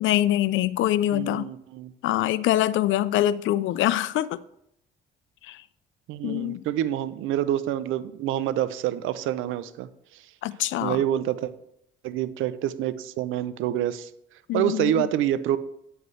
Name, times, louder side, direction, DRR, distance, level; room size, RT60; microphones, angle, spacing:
voice 1, 0.0-1.5 2.0-4.4 5.4-5.6 6.2-6.6 10.4-11.0 14.5-15.1, left 13 dB, 80° left, 18 dB, 0.4 m, -24 dB
voice 2, 1.1-1.9 6.1-10.2 10.8-11.5 12.0-14.1 14.5-15.6, right 12 dB, 90° right, 15 dB, 0.6 m, -27 dB
9.1 x 8.0 x 3.2 m, 0.76 s
cardioid pair, 90°, 20 cm